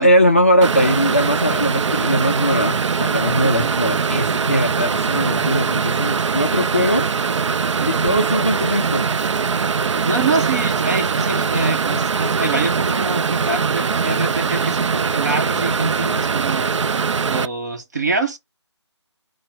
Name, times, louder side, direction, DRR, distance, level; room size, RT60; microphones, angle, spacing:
voice 1, 0.0-7.1 7.9-9.1, equal, 25° left, 0.3 m, -20 dB
sound 1, 0.6-17.5, right 5 dB, 80° right, 0.4 m, -21 dB
voice 2, 10.0-17.0 17.3-18.4, right 3 dB, 35° right, 0.8 m, -25 dB
4.5 x 2.0 x 4.4 m
figure-of-eight pair, 175°, 15 cm